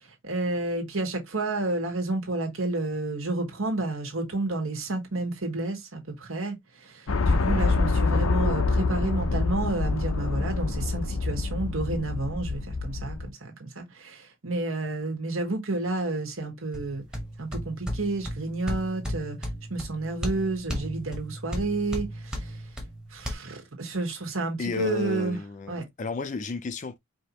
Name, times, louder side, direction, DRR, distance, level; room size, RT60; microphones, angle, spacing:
voice 1, 0.0-17.0 17.4-22.6 23.1-25.4 25.7-25.9, right 2 dB, 75° right, 1.7 m, -30 dB
sound 1, 7.1-13.3, left 3 dB, 85° left, 0.6 m, -26 dB
sound 2, 16.7-23.3, equal, 5° right, 1.0 m, -35 dB
voice 2, 24.6-27.0, left 3 dB, 35° left, 0.4 m, -32 dB
4.8 x 2.8 x 2.9 m
head